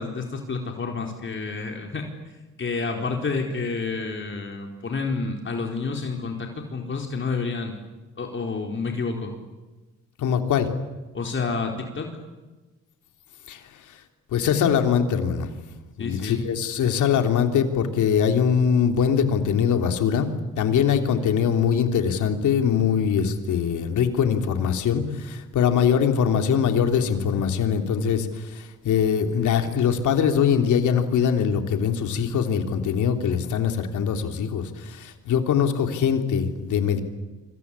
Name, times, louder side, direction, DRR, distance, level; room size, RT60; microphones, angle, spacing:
voice 1, 0.0-7.7 8.2-9.3 11.1-12.1 16.0-16.5, left 4 dB, 40° left, 2 dB, 4.3 m, -29 dB
voice 2, 10.2-10.7 13.5-13.6 14.3-15.5 16.0-37.0, left 7 dB, 75° left, 5 dB, 3.6 m, -22 dB
26.5 x 26.0 x 8.5 m, 1.2 s
cardioid pair, 90°, 30 cm